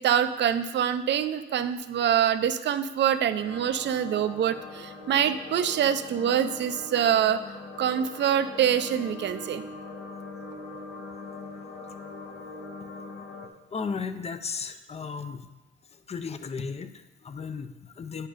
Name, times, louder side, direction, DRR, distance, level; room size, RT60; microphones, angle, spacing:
voice 1, 0.0-9.6, right 9 dB, 65° right, 11 dB, 0.6 m, -25 dB
sound 1, 3.4-13.5, left 3 dB, 65° left, 1.5 m, -42 dB
voice 2, 13.7-15.5 16.1-18.3, left 5 dB, 30° left, 10 dB, 0.7 m, -35 dB
9.8 x 5.7 x 5.0 m, 1.1 s
cardioid pair, 90°, 20 cm